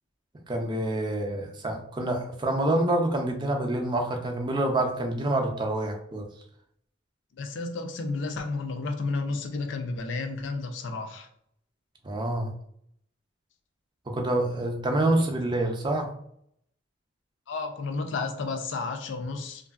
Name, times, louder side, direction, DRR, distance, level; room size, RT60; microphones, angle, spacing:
voice 1, 0.5-6.3 12.0-12.5 14.1-16.1, right 1 dB, 25° right, 3 dB, 0.4 m, -27 dB
voice 2, 7.4-11.3 17.5-19.7, left 3 dB, 70° left, 6 dB, 0.4 m, -32 dB
2.9 x 2.6 x 2.3 m, 0.69 s
head